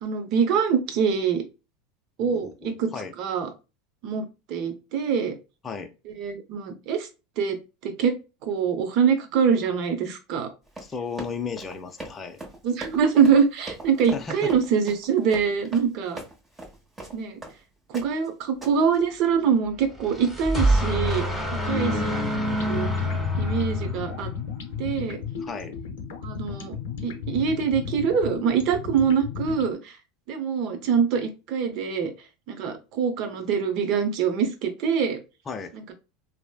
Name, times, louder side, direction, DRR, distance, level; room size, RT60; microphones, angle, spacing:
voice 1, 0.0-1.4 2.2-2.9 3.2-3.5 4.0-5.3 6.1-7.1 7.4-7.6 7.8-8.2 8.4-10.5 12.6-16.2 17.1-17.4 17.9-21.3 21.6-21.9 22.7-22.9 23.4-24.3 24.8-25.2 26.2-26.8 27.0-30.0 30.3-32.1 32.5-35.2 35.7-35.9, right 6 dB, 55° right, 7 dB, 0.7 m, -24 dB
voice 2, 2.2-3.1 5.6-5.9 10.8-12.4 14.1-14.5 21.7-22.8 25.4-25.7 35.5-35.7, left 5 dB, 25° left, 5 dB, 0.4 m, -34 dB
Run, 10.7-17.6 17.9-18.3 18.6-19.0, right 1 dB, 20° right, 1.1 m, -41 dB
sound 1, 19.9-24.4, equal, ahead, 1.3 m, -26 dB
sound 2, 22.1-29.7, left 7 dB, 80° left, 0.5 m, -35 dB
3.1 x 2.0 x 2.2 m, 0.28 s
hypercardioid pair, 100°, 0 cm